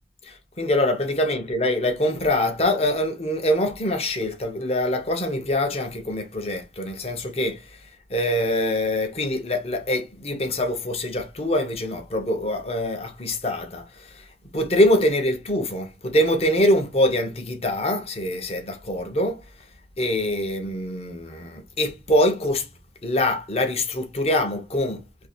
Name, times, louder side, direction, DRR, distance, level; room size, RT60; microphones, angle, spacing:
voice 1, 0.2-7.6 8.1-14.3 14.5-19.4 20.0-22.7 23.0-25.3, left 1 dB, 35° left, 0.8 m, -24 dB
2.8 x 2.6 x 4.2 m
head